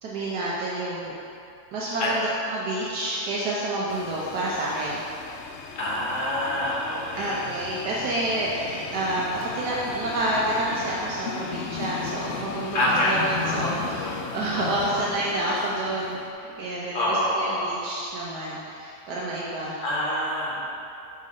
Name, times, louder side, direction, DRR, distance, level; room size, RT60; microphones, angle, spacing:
voice 1, 0.0-1.1 1.7-5.0 7.2-16.2 16.4-19.8, right 1 dB, 75° right, -6 dB, 1.4 m, -29 dB
sound 1, 3.9-16.3, left 6 dB, 80° left, 0.6 m, -36 dB
voice 2, 5.8-7.4 12.7-14.2 14.5-15.0 16.9-17.8 19.8-20.7, left 1 dB, 50° left, -5 dB, 1.7 m, -26 dB
9.4 x 3.8 x 5.3 m, 2.7 s
omnidirectional pair, 1.8 m